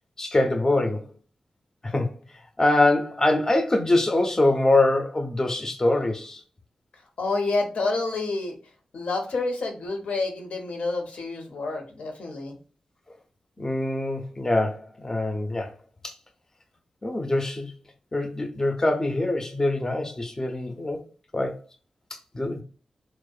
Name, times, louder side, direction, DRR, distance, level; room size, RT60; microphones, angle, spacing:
voice 1, 0.2-1.0 1.8-2.1 2.6-6.4 13.6-15.7 16.0-16.1 17.0-17.7 18.1-21.0 21.3-21.5 22.3-22.6, left 2 dB, 25° left, 0.4 m, -24 dB
voice 2, 7.2-8.6 8.9-12.6, left 3 dB, 85° left, 0.6 m, -28 dB
2.7 x 2.0 x 2.3 m
wide cardioid pair, 85°, 2 cm